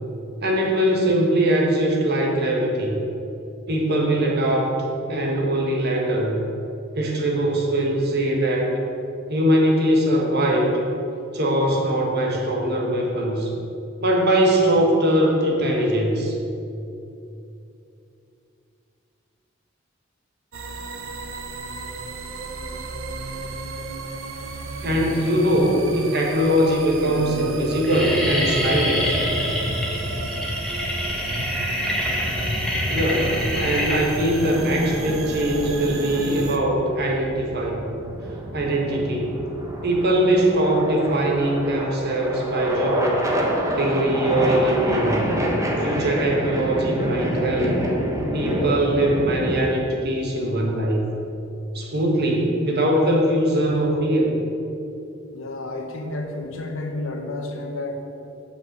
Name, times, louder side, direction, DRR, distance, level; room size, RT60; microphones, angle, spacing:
voice 1, 0.4-3.0 3.7-4.8 5.1-6.4 6.9-8.8 9.3-10.8 11.3-13.5 14.0-16.3 24.8-29.1 32.9-37.9 38.5-39.4 39.8-43.2 43.7-45.2 45.8-47.7 48.3-51.0 51.7-54.3, right 1 dB, 55° right, 0 dB, 1.5 m, -21 dB
sound 1, 20.5-36.6, right 3 dB, 85° right, 0.8 m, -34 dB
voice 2, 24.8-26.0 27.0-27.8 28.1-29.4 55.3-58.0, left 1 dB, 80° left, 3 dB, 1.2 m, -32 dB
sound 2, 25.2-25.8 26.5-26.6 26.9-27.2 27.5-36.4, equal, 5° left, 1.4 m, -26 dB
sound 3, 34.4-49.7, equal, 15° right, 1.2 m, -28 dB
7.3 x 5.7 x 7.5 m, 2.8 s
head